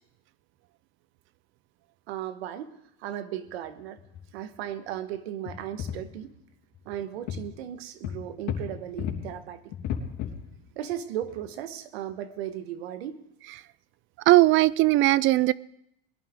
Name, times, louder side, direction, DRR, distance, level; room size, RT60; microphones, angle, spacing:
voice 1, 2.1-4.0 4.3-6.3 6.9-9.6 10.7-13.2, right 11 dB, 90° right, 11 dB, 1.4 m, -36 dB
sound 1, 3.5-3.7 4.0-4.2 4.5-4.6 5.5-6.2 6.7-6.9 7.3-7.4 8.0-9.2 9.7-10.5 10.9-11.0 11.2-11.5 12.1-12.2, left 8 dB, 60° left, 3.3 m, -34 dB
voice 2, 14.3-15.5, right 18 dB, 40° right, 22 dB, 0.4 m, -19 dB
22.0 x 11.5 x 3.7 m, 0.78 s
supercardioid pair, 125°, 31 cm